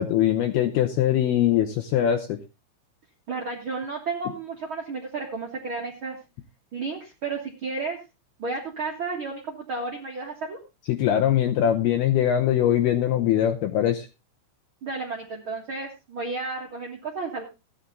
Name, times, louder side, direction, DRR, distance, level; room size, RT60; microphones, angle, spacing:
voice 1, 0.0-2.4 10.9-14.1, left 10 dB, 75° left, 5 dB, 2.4 m, -22 dB
voice 2, 3.3-6.2 6.7-8.0 8.4-10.6 14.8-17.4, right 4 dB, 60° right, 0 dB, 1.3 m, -32 dB
15.0 x 10.0 x 3.8 m, 0.27 s
omnidirectional pair, 5.4 m